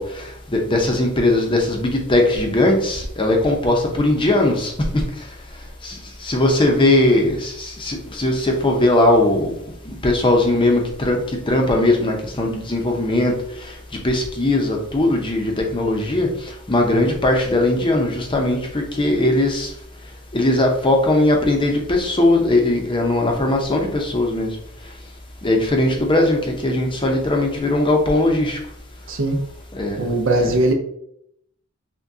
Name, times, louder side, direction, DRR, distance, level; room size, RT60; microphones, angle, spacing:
voice 1, 0.0-5.0 5.8-5.9 6.2-9.5 10.0-13.3 14.0-16.3 16.7-19.7 20.3-24.5 25.4-28.6 29.7-30.5, left 1 dB, 25° left, 1 dB, 0.6 m, -19 dB
voice 2, 29.1-29.4 30.0-30.7, right 2 dB, 60° right, 4 dB, 0.6 m, -19 dB
6.0 x 2.2 x 2.7 m, 0.74 s
head